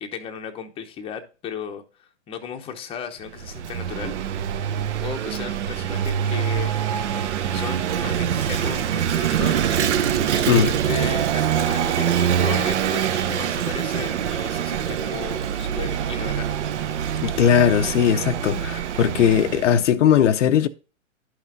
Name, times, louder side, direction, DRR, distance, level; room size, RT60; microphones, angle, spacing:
voice 1, 0.0-4.2 5.0-7.2 7.5-9.8 10.3-16.7, left 7 dB, 15° left, 0.8 m, -35 dB
Vehicle / Engine, 3.3-19.9, right 9 dB, 60° right, 0.9 m, -24 dB
sound 1, 5.3-10.4, right 2 dB, 5° right, 0.4 m, -40 dB
voice 2, 17.2-20.7, left 9 dB, 65° left, 0.7 m, -19 dB
11.5 x 5.7 x 2.6 m
hypercardioid pair, 125°, 39 cm